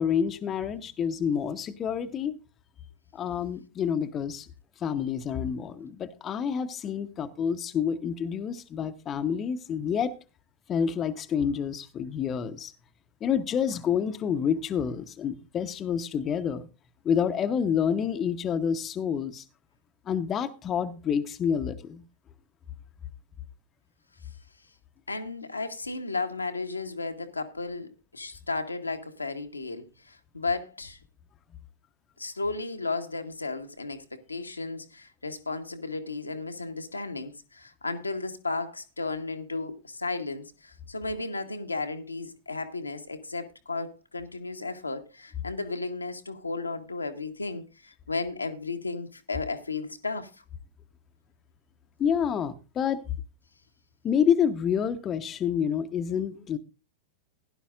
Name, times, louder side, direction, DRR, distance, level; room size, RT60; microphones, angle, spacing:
voice 1, 0.0-2.4 3.1-4.5 4.8-10.1 10.7-12.7 13.2-16.7 17.0-19.4 20.1-22.0 52.0-53.0 54.0-56.6, left 7 dB, 25° left, 1.0 m, -28 dB
voice 2, 25.1-31.0 32.2-50.4, left 3 dB, 80° left, 1.3 m, -34 dB
16.5 x 11.0 x 2.5 m
figure-of-eight pair, 90°, 0 cm